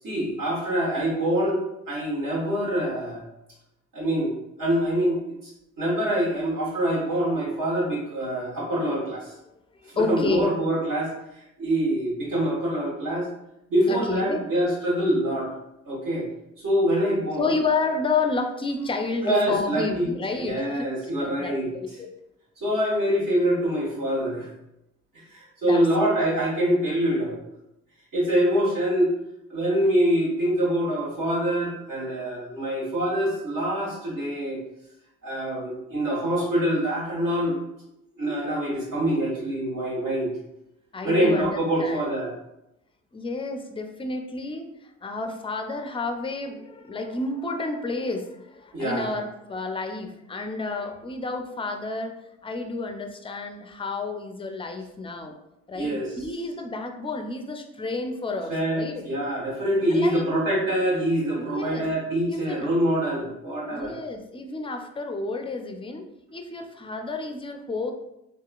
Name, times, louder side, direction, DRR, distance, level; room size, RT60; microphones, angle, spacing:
voice 1, 0.0-1.6 1.9-3.2 3.9-4.3 4.6-5.5 5.8-9.3 9.9-13.3 13.7-15.5 15.8-16.3 16.6-17.5 19.2-21.7 22.6-24.5 25.1-27.4 28.1-29.1 29.5-34.6 35.2-37.6 38.2-40.3 41.0-42.3 48.7-49.1 55.7-56.1 58.5-63.9, right 1 dB, 65° right, -6 dB, 1.4 m, -25 dB
voice 2, 9.8-10.5 13.9-14.4 17.4-22.1 25.6-25.9 26.2-26.3 40.9-42.0 43.1-52.2 52.4-55.3 55.7-59.0 59.9-60.3 61.4-61.9 62.3-62.7 63.7-66.0 66.3-67.9, left 3 dB, 15° left, 5 dB, 0.4 m, -30 dB
2.8 x 2.3 x 2.4 m, 0.86 s
hypercardioid pair, 45°, 37 cm